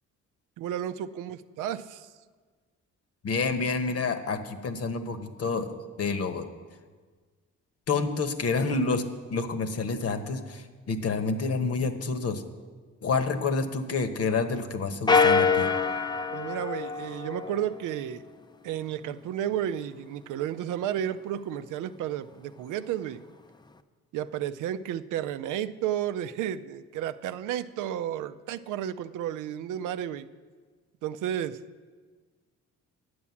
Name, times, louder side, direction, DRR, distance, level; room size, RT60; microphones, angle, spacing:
voice 1, 0.6-2.1 16.3-18.2 18.6-23.2 24.1-30.3 31.0-31.6, right 10 dB, 85° right, 11 dB, 0.5 m, -32 dB
voice 2, 3.2-6.5 7.9-9.0 9.3-12.4 13.0-15.7, left 4 dB, 50° left, 8 dB, 1.1 m, -28 dB
sound 1, 15.1-17.8, left 5 dB, 15° left, 0.5 m, -25 dB
9.6 x 8.6 x 7.1 m, 1.5 s
cardioid pair, 90°, 30 cm